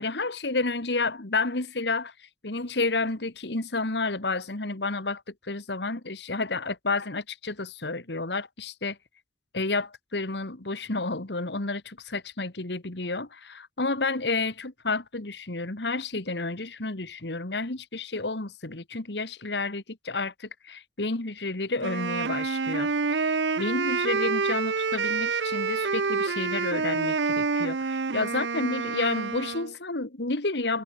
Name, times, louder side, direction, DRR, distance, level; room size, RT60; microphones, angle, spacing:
voice 1, 0.0-9.0 9.5-30.8, left 3 dB, 70° left, 1.9 m, -30 dB
Wind instrument woodwind instrument, 21.8-29.7, right 4 dB, 85° right, 0.9 m, -27 dB
head